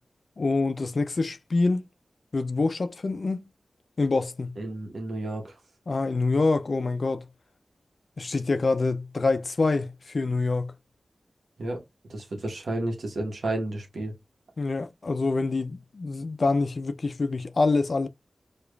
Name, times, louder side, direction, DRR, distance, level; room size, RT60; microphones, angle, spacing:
voice 1, 0.4-1.8 2.3-3.4 4.0-4.6 5.9-7.3 8.2-10.7 14.6-18.1, left 3 dB, 60° left, 0.3 m, -26 dB
voice 2, 4.6-5.6 11.6-11.8 12.1-14.1, right 2 dB, 80° right, 0.9 m, -31 dB
4.8 x 2.4 x 2.2 m
cardioid pair, 50°, 0 cm